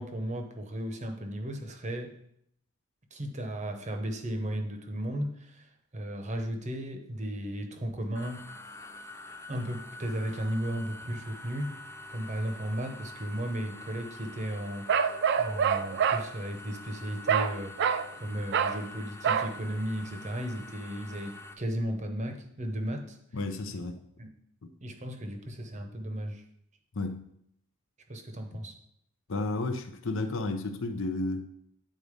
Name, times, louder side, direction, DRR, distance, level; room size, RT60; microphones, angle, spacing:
voice 1, 0.0-2.2 3.1-8.5 9.5-11.7 12.1-23.2 24.2-24.3 24.8-26.4 28.1-28.7, equal, 30° right, 0.8 m, -35 dB
sound 1, 8.1-21.5, left 2 dB, 10° left, 0.4 m, -46 dB
Bark, 14.9-16.3 17.3-17.5 17.8-18.1 18.5-18.8 19.2-19.5, right 7 dB, 50° right, 0.4 m, -26 dB
voice 2, 23.3-24.0 24.6-24.7 26.9-27.3 28.5-28.6 29.3-31.5, left 2 dB, 60° left, 0.7 m, -32 dB
8.5 x 4.0 x 5.1 m
head